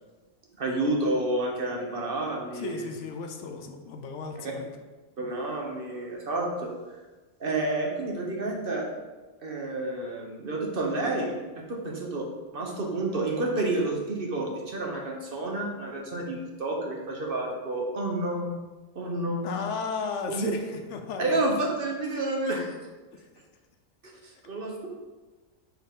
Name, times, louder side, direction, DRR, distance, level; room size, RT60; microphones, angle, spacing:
voice 1, 0.6-2.9 4.4-4.5 5.2-6.7 7.4-8.9 9.4-12.3 12.5-18.6 18.9-19.5 20.3-20.5 21.2-22.8 24.2-24.9, right 2 dB, 50° right, 0 dB, 1.0 m, -30 dB
voice 2, 2.5-4.7 19.4-21.5 23.1-23.3, left 5 dB, 75° left, 5 dB, 1.0 m, -35 dB
6.6 x 4.1 x 3.6 m, 1.2 s
omnidirectional pair, 1.3 m